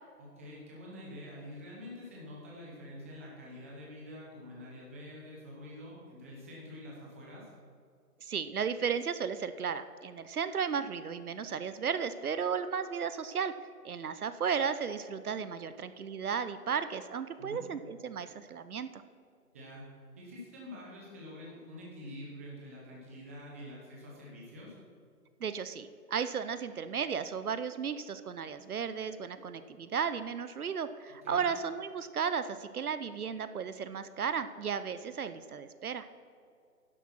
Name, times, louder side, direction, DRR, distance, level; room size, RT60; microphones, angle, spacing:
voice 1, 0.2-7.5 17.4-17.6 19.5-19.8 20.2-24.8 31.2-31.4, left 1 dB, 10° right, -4 dB, 0.9 m, -47 dB
voice 2, 8.2-13.5 13.8-19.0 25.4-36.1, right 6 dB, 65° right, 12 dB, 0.7 m, -34 dB
11.0 x 8.0 x 5.9 m, 2.4 s
hypercardioid pair, 160°, 47 cm